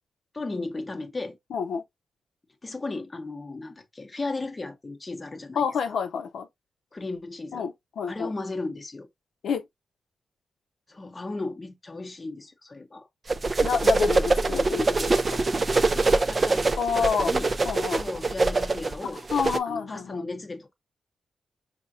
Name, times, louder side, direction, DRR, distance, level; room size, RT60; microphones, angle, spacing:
voice 1, 0.3-1.4 2.6-6.0 6.9-7.7 8.1-9.1 10.9-13.1 15.9-16.7 16.9-17.5 17.9-19.2 19.7-20.7, left 3 dB, 20° left, 0.7 m, -35 dB
voice 2, 1.5-1.8 5.6-6.5 7.5-8.3 9.4-9.6 13.6-15.4 16.8-17.3 17.6-18.0 19.3-20.2, left 6 dB, 85° left, 0.6 m, -28 dB
sound 1, 13.3-19.6, right 3 dB, 25° right, 0.4 m, -24 dB
5.5 x 2.8 x 2.5 m
wide cardioid pair, 160°, 0 cm